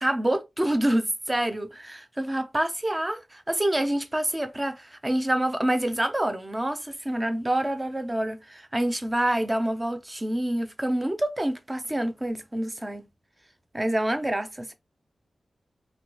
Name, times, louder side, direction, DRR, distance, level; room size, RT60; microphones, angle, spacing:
voice 1, 0.0-13.0 13.7-14.7, right 1 dB, 15° right, 0.4 m, -27 dB
3.1 x 2.5 x 2.8 m
wide cardioid pair, 155°, 0 cm